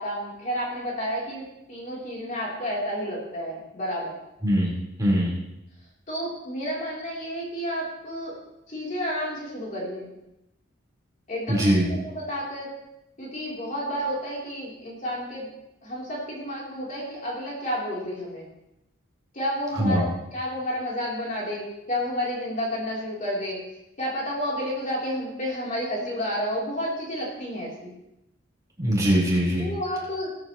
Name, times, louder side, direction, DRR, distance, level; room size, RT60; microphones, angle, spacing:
voice 1, 0.0-4.1 6.1-8.4 8.7-10.1 11.3-12.7 13.2-15.5 15.8-18.5 19.3-23.6 24.0-27.9 29.6-30.3, equal, 40° left, -5 dB, 3.5 m, -31 dB
voice 2, 4.4-4.7 5.0-5.3 11.5-11.8 19.8-20.0 28.8-29.7, equal, 15° right, -6 dB, 4.3 m, -21 dB
20.0 x 9.5 x 3.1 m, 0.87 s
head